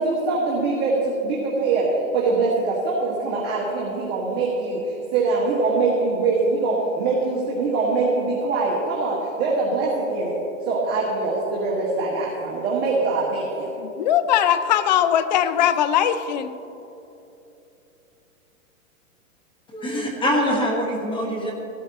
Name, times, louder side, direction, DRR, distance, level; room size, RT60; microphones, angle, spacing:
voice 1, 0.0-10.4 10.7-13.7, right 3 dB, 25° right, -5 dB, 1.6 m, -23 dB
voice 2, 13.8-16.5, left 10 dB, 35° left, 12 dB, 0.4 m, -20 dB
voice 3, 19.7-21.5, equal, 10° left, -1 dB, 1.3 m, -24 dB
15.0 x 12.5 x 3.0 m, 3.0 s
hypercardioid pair, 135°, 42 cm